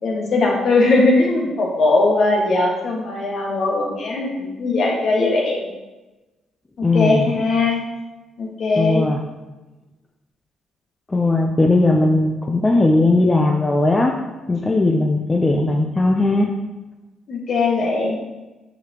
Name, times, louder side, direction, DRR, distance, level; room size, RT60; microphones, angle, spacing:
voice 1, 0.0-5.7 6.8-7.8 8.4-9.0 17.3-18.2, left 3 dB, 60° left, -2 dB, 1.7 m, -19 dB
voice 2, 6.8-7.3 8.8-9.2 11.1-14.1 14.5-16.5, left 2 dB, 20° left, 1 dB, 0.6 m, -18 dB
6.5 x 4.9 x 3.0 m, 1.1 s
cardioid pair, 90°, 0 cm